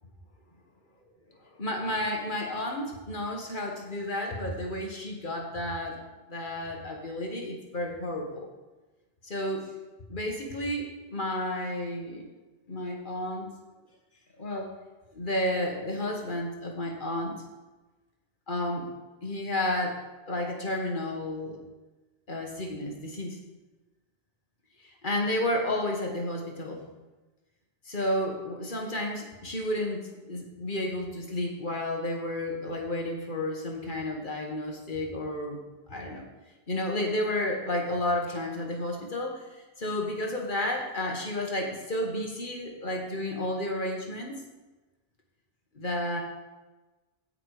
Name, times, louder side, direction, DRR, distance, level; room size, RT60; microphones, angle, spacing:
voice 1, 1.4-6.0 6.3-8.5 9.2-9.7 10.1-12.2 12.7-13.5 14.4-14.7 15.1-17.4 18.5-18.9 19.2-21.6 22.3-23.4 24.8-26.8 27.9-35.6 35.9-36.2 36.7-44.4 45.7-46.2, left 1 dB, 50° left, 1 dB, 1.9 m, -32 dB
16.5 x 6.0 x 5.0 m, 1.2 s
omnidirectional pair, 1.1 m